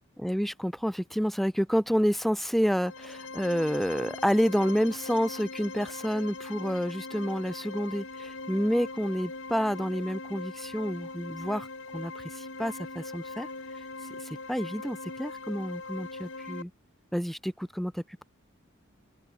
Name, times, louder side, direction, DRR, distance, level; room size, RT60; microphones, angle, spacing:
voice 1, 0.2-11.7 11.9-13.5 14.5-16.7 17.1-18.0, equal, ahead, 3.1 m, -29 dB
sound 1, 2.6-16.6, left 3 dB, 70° left, 5.3 m, -41 dB
open air
head